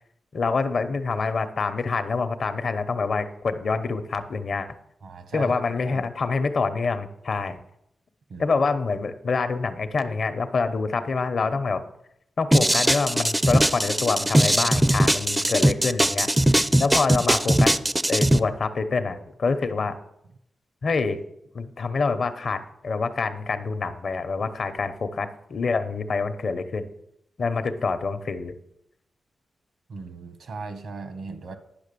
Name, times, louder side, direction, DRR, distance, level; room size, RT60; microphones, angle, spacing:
voice 1, 0.3-4.7 5.3-7.6 8.4-11.8 12.4-16.3 16.8-17.7 18.1-20.0 20.8-21.2 21.5-26.9 27.4-28.5, left 4 dB, 60° left, 10 dB, 0.8 m, -26 dB
voice 2, 5.0-6.1 8.3-8.6 29.9-31.5, right 3 dB, 80° right, 9 dB, 1.2 m, -37 dB
sound 1, 12.5-18.4, right 1 dB, 10° right, 0.4 m, -20 dB
10.5 x 5.5 x 6.8 m, 0.79 s
cardioid pair, 95°, 0 cm